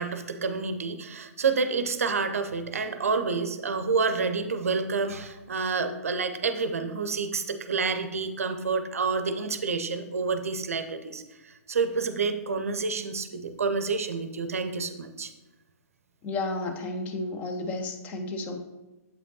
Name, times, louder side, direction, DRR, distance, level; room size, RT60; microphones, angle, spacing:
voice 1, 0.0-15.3, right 4 dB, 65° right, 9 dB, 0.5 m, -29 dB
voice 2, 16.2-18.6, left 2 dB, 20° left, 4 dB, 0.5 m, -32 dB
7.4 x 4.9 x 2.8 m, 1.1 s
figure-of-eight pair, 120°, 8 cm